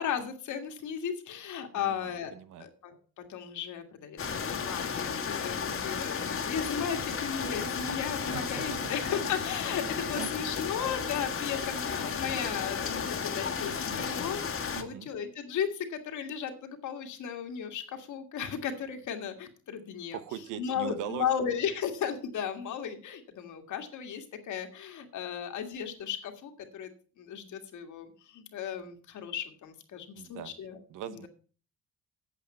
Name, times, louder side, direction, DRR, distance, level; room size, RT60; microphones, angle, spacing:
voice 1, 0.0-3.0 3.3-14.4 14.8-20.2 20.6-26.9 27.2-30.8 31.1-31.3, left 8 dB, 75° left, 5 dB, 1.9 m, -35 dB
voice 2, 1.7-2.7 8.3-8.9 10.2-10.3 14.7-15.1 20.1-21.3 30.1-30.5 30.9-31.3, right 10 dB, 85° right, 13 dB, 1.0 m, -40 dB
sound 1, 4.2-14.8, left 6 dB, 45° left, 1.5 m, -33 dB
8.4 x 8.2 x 5.6 m, 0.39 s
cardioid pair, 90°, 30 cm